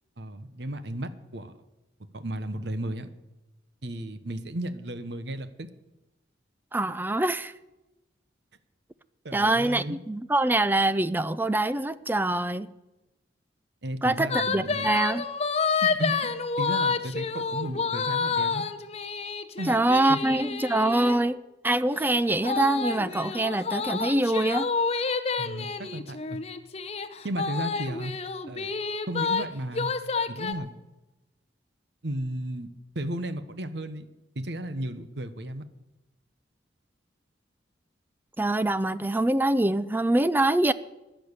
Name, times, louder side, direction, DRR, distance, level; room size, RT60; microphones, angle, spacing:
voice 1, 0.2-1.5 2.1-3.1 3.8-5.7 9.2-10.0 13.8-14.9 15.8-16.3 16.6-18.6 19.6-19.8 20.1-20.2 25.4-26.4 27.2-28.1 28.5-28.7 29.1-29.9 30.3-30.7 32.0-32.7 32.9-34.1 34.3-35.7, right 1 dB, 65° right, 1.1 m, -34 dB
voice 2, 6.7-7.5 9.3-12.7 14.0-15.2 19.6-24.7 38.4-40.7, right 2 dB, 10° right, 0.4 m, -24 dB
sound 1, 14.3-21.2 22.4-29.5 29.7-30.5, left 4 dB, 35° left, 0.8 m, -29 dB
15.5 x 10.5 x 6.7 m
head